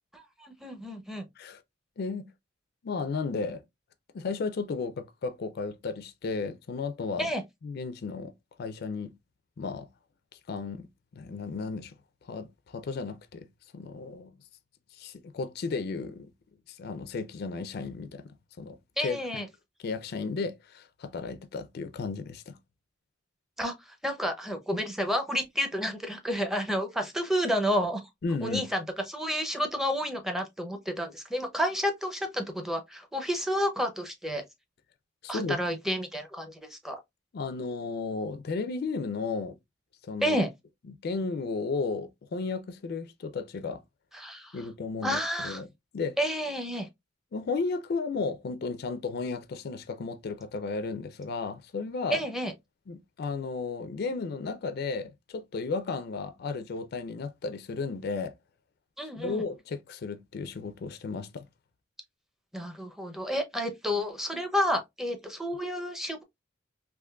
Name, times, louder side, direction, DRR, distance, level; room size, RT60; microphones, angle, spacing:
voice 1, 0.1-1.3 7.2-7.4 19.0-19.5 23.6-28.0 28.4-34.4 35.3-37.0 40.2-40.5 44.1-44.6 45.0-45.6 46.2-46.9 52.1-52.5 59.0-59.4 62.5-66.2, equal, ahead, 0.5 m, -30 dB
voice 2, 2.0-2.3 2.8-3.6 4.1-7.3 7.6-8.3 8.6-9.1 9.6-9.9 10.5-10.9 11.1-11.9 12.2-13.5 13.7-14.4 14.9-16.3 16.7-18.8 19.0-19.4 19.8-22.6 28.2-28.6 35.2-35.6 37.3-39.6 40.0-40.4 41.0-43.8 44.5-45.7 45.9-46.2 47.3-52.2 52.9-58.3 59.2-61.5, left 4 dB, 55° left, 0.4 m, -34 dB
3.6 x 2.8 x 2.2 m
head